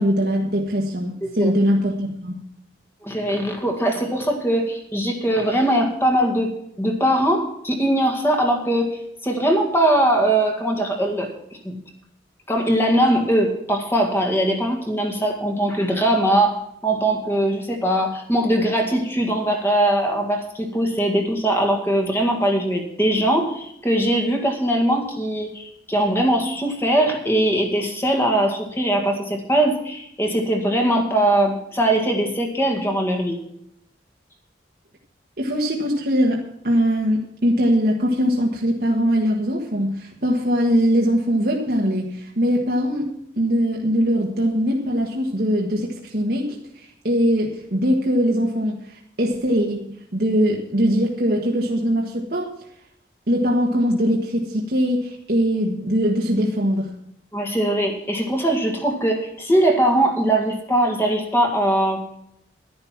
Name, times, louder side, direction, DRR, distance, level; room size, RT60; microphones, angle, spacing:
voice 1, 0.0-2.4 35.4-43.1 43.4-52.5 53.3-56.9, equal, 55° right, -1 dB, 1.6 m, -21 dB
voice 2, 3.0-6.5 6.8-8.9 9.2-11.3 11.6-11.8 12.5-33.4 57.3-62.2, right 1 dB, 10° left, 2 dB, 1.9 m, -21 dB
11.5 x 11.0 x 5.9 m, 0.76 s
head